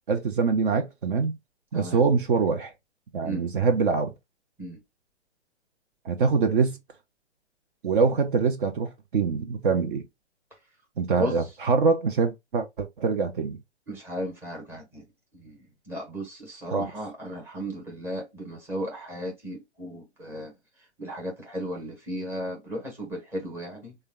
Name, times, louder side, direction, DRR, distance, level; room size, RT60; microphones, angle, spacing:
voice 1, 0.1-1.4 1.7-2.7 3.1-4.1 6.0-6.8 7.8-10.0 11.0-13.6 16.7-16.9, right 5 dB, 50° right, 0.7 m, -24 dB
voice 2, 13.9-15.0 15.3-15.6 15.9-20.5 21.0-24.0, equal, 5° right, 0.9 m, -35 dB
3.5 x 2.3 x 3.3 m
figure-of-eight pair, 130°, 34 cm